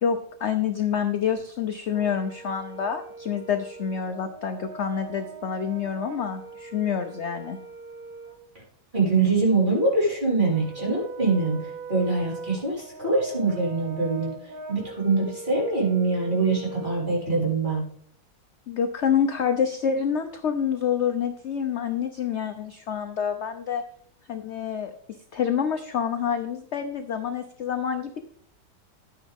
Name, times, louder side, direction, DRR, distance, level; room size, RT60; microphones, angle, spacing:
voice 1, 0.0-7.6 18.7-23.8 24.3-24.9 25.3-28.3, left 7 dB, 55° left, 7 dB, 0.8 m, -27 dB
Brass instrument, 1.9-8.4 10.5-17.1, right 4 dB, 55° right, 1.5 m, -41 dB
voice 2, 8.9-17.9, right 3 dB, 25° right, -6 dB, 5.1 m, -24 dB
12.0 x 9.6 x 3.6 m, 0.64 s
omnidirectional pair, 1.9 m